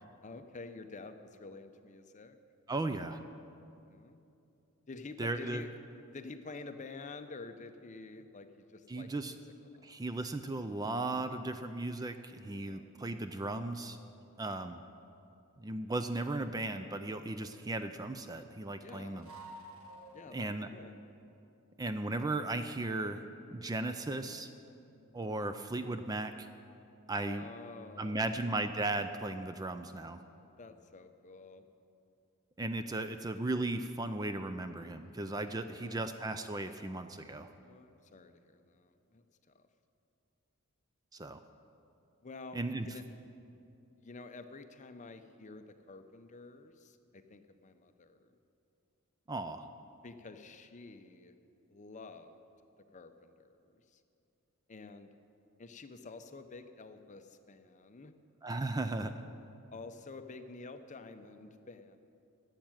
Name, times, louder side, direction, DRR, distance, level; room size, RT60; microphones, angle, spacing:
voice 1, 0.2-2.4 3.9-4.2 4.9-5.7 6.1-9.4 9.6-9.9 12.6-12.9 18.8-19.3 20.1-21.0 27.2-28.4 30.6-31.7 35.7-36.3 37.6-39.7 42.2-43.1 44.0-48.4 50.0-51.3 51.7-52.4 52.9-54.0 54.7-55.2 55.6-58.1 59.7-62.0, left 3 dB, 35° left, 9 dB, 0.6 m, -49 dB
voice 2, 2.7-3.2 5.2-5.6 8.9-9.3 9.8-14.0 14.4-14.8 15.6-19.3 20.3-20.7 21.8-23.2 23.5-24.5 25.1-26.5 27.1-27.4 28.0-30.2 32.6-37.5 41.1-41.4 42.5-42.9 49.3-49.6 58.4-59.1, right 2 dB, 15° right, 9 dB, 0.4 m, -36 dB
sound 1, 19.2-20.6, right 1 dB, 70° right, 1.5 m, -52 dB
12.0 x 7.4 x 9.1 m, 2.7 s
head